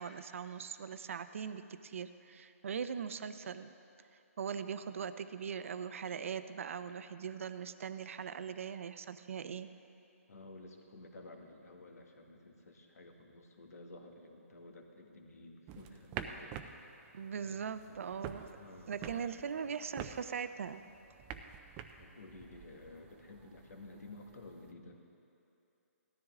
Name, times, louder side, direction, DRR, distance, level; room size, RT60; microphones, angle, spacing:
voice 1, 0.0-3.7 4.4-9.7 17.1-18.6 18.9-20.8, right 7 dB, 60° right, 11 dB, 0.6 m, -40 dB
voice 2, 10.3-17.3 17.9-18.1 18.6-19.3 22.0-25.0, left 2 dB, 85° left, 2 dB, 2.0 m, -53 dB
sound 1, 15.7-24.7, right 8 dB, 15° right, 0.4 m, -49 dB
17.5 x 13.0 x 3.7 m, 2.8 s
hypercardioid pair, 160°, 8 cm